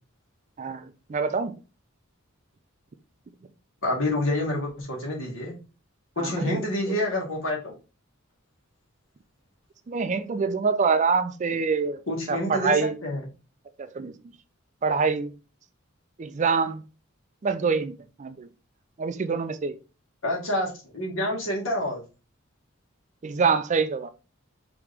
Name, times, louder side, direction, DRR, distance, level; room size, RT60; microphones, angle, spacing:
voice 1, 0.6-1.6 6.2-6.6 9.9-12.0 12.3-13.0 13.8-14.1 14.8-15.3 16.2-16.8 17.4-18.5 19.0-19.8 23.2-24.1, right 5 dB, 35° right, 0.4 m, -25 dB
voice 2, 3.8-5.6 6.2-7.7 12.1-13.2 20.2-22.0, left 1 dB, 70° left, 1.9 m, -28 dB
5.0 x 3.0 x 3.3 m
head